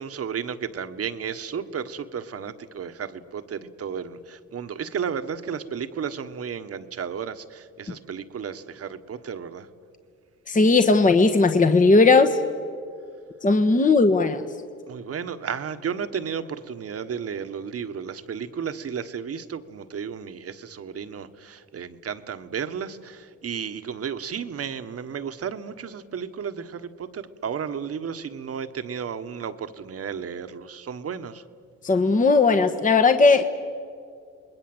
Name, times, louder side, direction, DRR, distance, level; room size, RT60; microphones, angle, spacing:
voice 1, 0.0-9.7 14.9-31.4, right 7 dB, 50° right, 10 dB, 1.4 m, -33 dB
voice 2, 10.5-12.4 13.4-14.4 31.8-33.4, left 3 dB, 25° left, 7 dB, 1.3 m, -17 dB
28.5 x 21.0 x 7.9 m, 2.3 s
cardioid pair, 90°, 30 cm